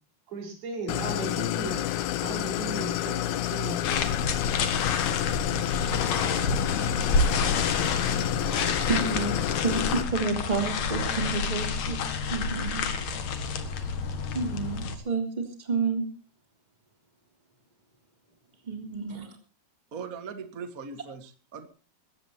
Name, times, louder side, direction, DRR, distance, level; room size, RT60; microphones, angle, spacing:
voice 1, 0.3-1.8 2.2-4.1, right 3 dB, 75° right, 2 dB, 6.5 m, -36 dB
Idling, 0.9-10.0, left 13 dB, 85° left, 2.9 m, -29 dB
sound 1, 3.8-15.0, left 4 dB, 55° left, 2.6 m, -29 dB
voice 2, 7.9-12.0 12.3-12.8 13.3-13.4 13.8-13.9 14.3-16.1 18.6-19.4, right 4 dB, 10° right, 3 dB, 3.1 m, -30 dB
voice 3, 19.9-21.7, right 5 dB, 60° right, 9 dB, 0.9 m, -39 dB
21.0 x 17.0 x 2.9 m, 0.33 s
omnidirectional pair, 4.4 m